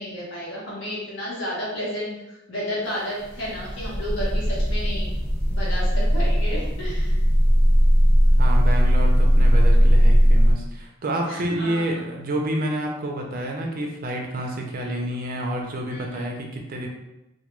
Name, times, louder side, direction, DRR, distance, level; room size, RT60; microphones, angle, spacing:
voice 1, 0.0-2.1 2.5-5.1 5.5-7.2 11.2-12.0 15.9-16.3, equal, 60° left, -6 dB, 0.8 m, -32 dB
sound 1, 3.2-10.5, equal, 10° left, 0.9 m, -18 dB
voice 2, 8.4-16.9, right 1 dB, 45° right, 1 dB, 0.4 m, -29 dB
2.2 x 2.2 x 2.9 m, 0.96 s
head